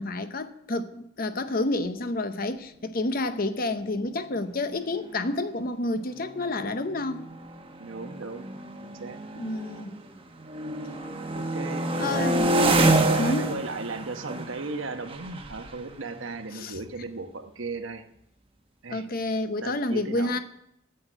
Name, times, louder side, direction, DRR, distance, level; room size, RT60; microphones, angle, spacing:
voice 1, 0.0-7.2 9.4-10.0 12.0-12.6 13.2-13.6 16.5-16.8 18.9-20.4, left 2 dB, 45° left, 0.7 m, -29 dB
sound 1, 4.7-4.8 5.0-5.4 6.1-10.0 10.4-17.0, right 2 dB, 25° right, 1.0 m, -28 dB
voice 2, 7.8-9.2 11.3-12.4 12.9-18.0 18.8-19.1 19.6-20.3, right 3 dB, 75° right, 1.0 m, -36 dB
9.5 x 8.1 x 7.9 m
head